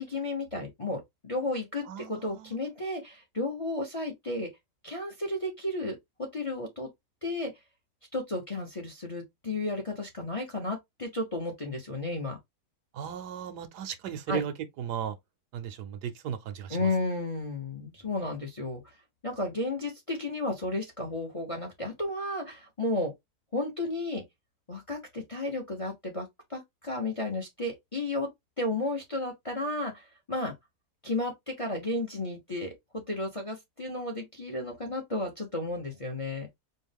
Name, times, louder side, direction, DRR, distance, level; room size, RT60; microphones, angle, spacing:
voice 1, 0.0-4.5 4.8-6.9 7.2-7.5 8.1-12.4 14.3-14.4 16.7-18.9 19.2-23.1 23.5-24.2 24.7-28.3 28.6-30.5 31.0-36.5, left 2 dB, 25° left, 0.8 m, -33 dB
voice 2, 1.9-2.5 12.9-15.2 15.5-16.9, right 8 dB, 75° right, 1.2 m, -36 dB
4.3 x 2.4 x 3.5 m
omnidirectional pair, 1.8 m